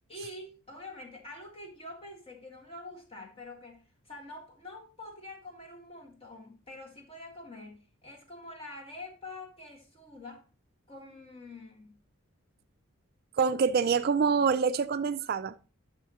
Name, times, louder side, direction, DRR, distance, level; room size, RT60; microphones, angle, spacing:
voice 1, 0.1-10.4 10.9-12.0, left 2 dB, 25° left, 1.9 m, -46 dB
voice 2, 13.4-15.5, right 5 dB, 45° right, 0.3 m, -26 dB
11.5 x 5.6 x 2.9 m
head